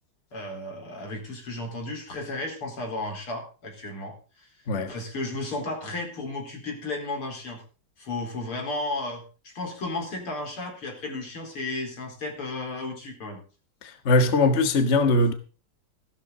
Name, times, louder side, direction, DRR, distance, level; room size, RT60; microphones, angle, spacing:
voice 1, 0.3-4.5 4.9-7.6 8.0-13.4, left 2 dB, 85° left, 5.3 m, -34 dB
voice 2, 13.8-15.3, left 2 dB, 35° left, 1.6 m, -21 dB
15.5 x 12.5 x 4.0 m
omnidirectional pair, 2.4 m